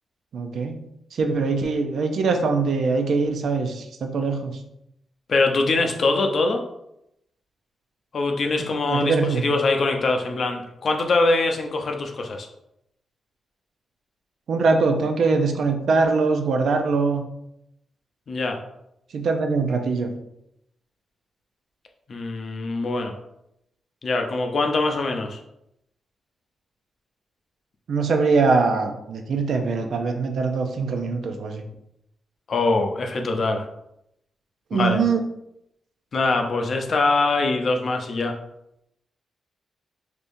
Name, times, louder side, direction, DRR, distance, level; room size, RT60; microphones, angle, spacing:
voice 1, 0.3-0.8 1.2-4.6 8.6-9.5 14.5-17.2 19.1-20.1 27.9-31.6 34.7-35.2, right 4 dB, 75° right, 5 dB, 0.5 m, -22 dB
voice 2, 5.3-6.6 8.1-12.5 18.3-18.6 22.1-23.1 24.0-25.4 32.5-33.6 34.7-35.0 36.1-38.3, left 3 dB, 60° left, 3 dB, 0.5 m, -23 dB
3.5 x 2.8 x 2.6 m, 0.81 s
cardioid pair, 70°, 0 cm